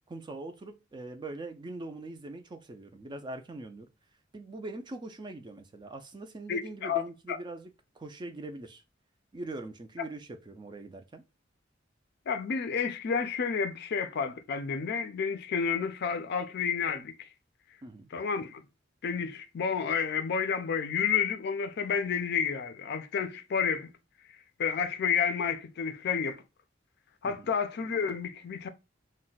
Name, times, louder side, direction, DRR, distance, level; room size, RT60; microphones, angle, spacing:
voice 1, 0.1-3.9 4.3-7.7 8.0-8.8 9.3-11.2 17.8-18.1 27.2-27.5, right 2 dB, 25° right, 0.4 m, -42 dB
voice 2, 6.5-7.4 12.3-17.3 18.1-18.6 19.0-23.9 24.6-26.4 27.2-28.7, left 6 dB, 55° left, 0.4 m, -30 dB
2.3 x 2.1 x 3.9 m
head